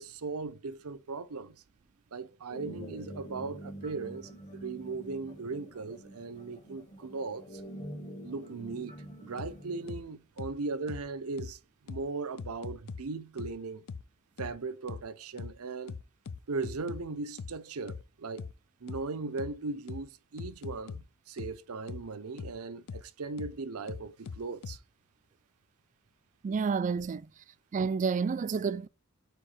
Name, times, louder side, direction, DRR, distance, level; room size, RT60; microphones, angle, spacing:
voice 1, 0.0-1.6 2.1-7.6 8.2-11.6 11.8-13.9 14.4-16.0 16.5-18.5 18.8-24.8, right 4 dB, 80° right, 0.7 m, -38 dB
sound 1, 2.5-10.0, equal, 35° left, 1.2 m, -46 dB
sound 2, 9.4-9.5 9.9-10.0 10.4-10.5 10.9-11.0 11.4-11.5 11.9-12.0 12.4-13.0 13.4-13.5 13.9-14.0 14.4-14.5 14.9-15.0 15.4-15.5 15.9-17.0 17.4-17.5 17.9-18.0 18.4-18.5 18.9-19.0 19.4-19.5 19.9-20.0 20.4-21.0 21.4-21.5 21.9-22.0 22.4-22.5 22.9-23.0 23.4-23.5 23.9-24.8, left 5 dB, 70° left, 0.4 m, -40 dB
voice 2, 26.4-27.2 27.7-28.9, right 5 dB, 35° right, 0.3 m, -29 dB
4.7 x 4.5 x 4.9 m
head